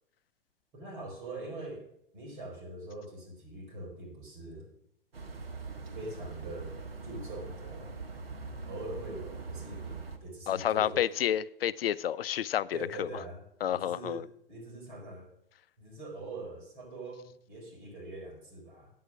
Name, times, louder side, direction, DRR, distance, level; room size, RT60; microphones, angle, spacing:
voice 1, 0.7-1.8 2.1-4.6 5.9-6.7 7.0-7.9 8.7-11.0 12.7-15.3 15.8-18.9, right 2 dB, 60° right, 4.5 m, -43 dB
sound 1, 5.1-10.2, right 4 dB, 85° right, 1.2 m, -42 dB
voice 2, 10.5-13.1 13.6-14.2, left 10 dB, 80° left, 0.5 m, -30 dB
9.3 x 7.9 x 6.2 m
figure-of-eight pair, 105°, 29 cm